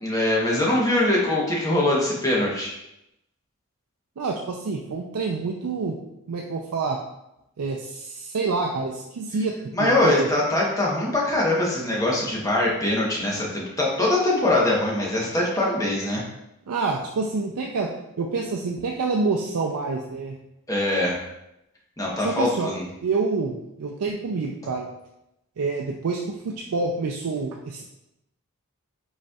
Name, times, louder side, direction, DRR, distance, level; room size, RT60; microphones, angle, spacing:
voice 1, 0.0-2.7 9.7-16.2 20.7-21.2 22.0-22.8, left 1 dB, 15° left, -4 dB, 0.9 m, -22 dB
voice 2, 4.2-6.0 6.3-7.0 7.6-10.3 16.7-17.9 18.2-20.4 22.2-22.7 23.0-24.9 25.6-27.8, right 4 dB, 85° right, 0 dB, 0.4 m, -27 dB
5.2 x 4.1 x 2.3 m, 0.87 s
head